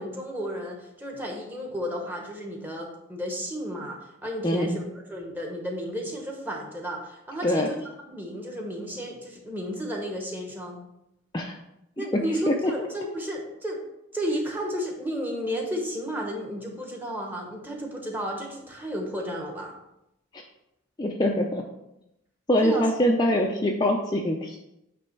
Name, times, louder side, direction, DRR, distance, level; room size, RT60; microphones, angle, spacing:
voice 1, 0.0-7.8 8.1-10.8 12.0-13.8 14.1-19.7 22.6-22.9, equal, 10° right, 1 dB, 1.0 m, -33 dB
voice 2, 4.4-4.8 7.4-7.7 11.3-11.6 12.0-12.1 12.5-12.6 20.3-20.4 21.0-21.6 22.5-24.6, equal, 20° left, 0 dB, 0.4 m, -24 dB
8.4 x 3.4 x 4.6 m, 0.86 s
head